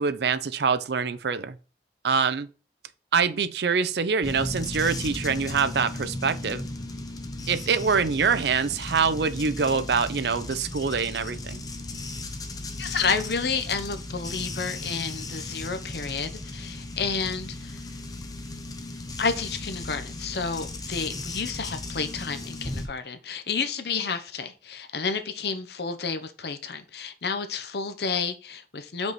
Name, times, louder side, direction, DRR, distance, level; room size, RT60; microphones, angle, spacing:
voice 1, 0.0-1.6 2.0-2.5 3.1-6.6 7.5-11.6, right 5 dB, 70° right, 0.5 m, -25 dB
sound 1, 4.2-22.9, left 2 dB, 20° left, 0.7 m, -36 dB
voice 2, 12.8-17.8 19.2-29.1, left 5 dB, 65° left, 0.8 m, -30 dB
5.3 x 4.6 x 4.1 m
head